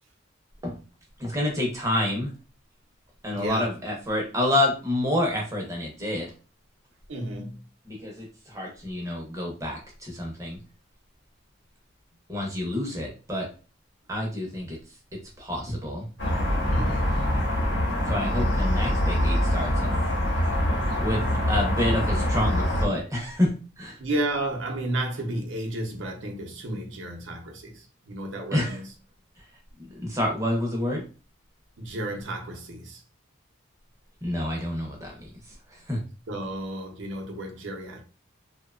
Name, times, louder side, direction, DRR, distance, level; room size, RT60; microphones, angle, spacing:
voice 1, 1.2-2.3 3.2-6.3 7.9-10.6 12.3-13.5 14.1-14.8 15.4-16.1 18.1-19.9 21.0-21.2 21.5-24.0 28.5-28.8 29.8-31.0 34.2-35.1 35.7-36.0, left 1 dB, 15° right, 0.6 m, -28 dB
voice 2, 3.3-3.7 7.1-7.7 16.7-17.2 24.0-28.9 31.8-33.0 36.3-38.0, right 1 dB, 60° right, 0.6 m, -32 dB
sound 1, 16.2-22.9, left 1 dB, 55° left, 1.0 m, -24 dB
2.7 x 2.2 x 2.2 m
head